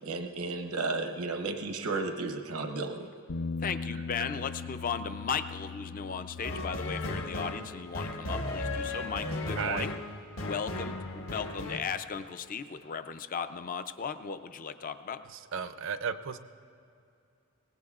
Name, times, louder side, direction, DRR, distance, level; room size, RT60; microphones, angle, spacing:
voice 1, 0.0-3.1, right 3 dB, 85° right, 5 dB, 0.9 m, -33 dB
Bass guitar, 3.3-9.5, left 4 dB, 80° left, 0.6 m, -41 dB
voice 2, 3.6-10.0 10.4-15.2, left 6 dB, 40° left, 11 dB, 0.4 m, -36 dB
sound 1, 6.4-11.8, left 2 dB, 60° left, 1.1 m, -36 dB
voice 3, 9.6-9.9 15.3-16.4, right 6 dB, 55° right, 11 dB, 0.5 m, -34 dB
23.0 x 18.5 x 2.4 m, 2.5 s
head